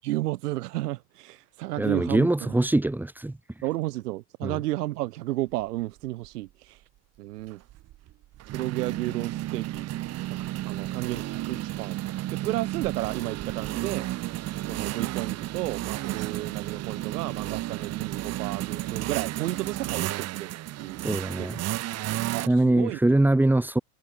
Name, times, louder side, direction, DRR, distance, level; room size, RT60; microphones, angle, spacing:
voice 1, 0.0-2.6 3.6-6.8 7.2-7.6 8.5-9.9 10.3-12.0 12.3-14.1 14.6-20.5 20.8-21.1 21.4-21.6 22.3-23.0, right 17 dB, 75° right, 7.0 m, -32 dB
voice 2, 1.8-3.4 4.4-4.6 21.0-21.6 22.5-23.8, right 2 dB, 5° right, 5.7 m, -23 dB
sound 1, 6.0-6.3 7.5-22.5, right 15 dB, 30° right, 7.2 m, -32 dB
supercardioid pair, 165°, 47 cm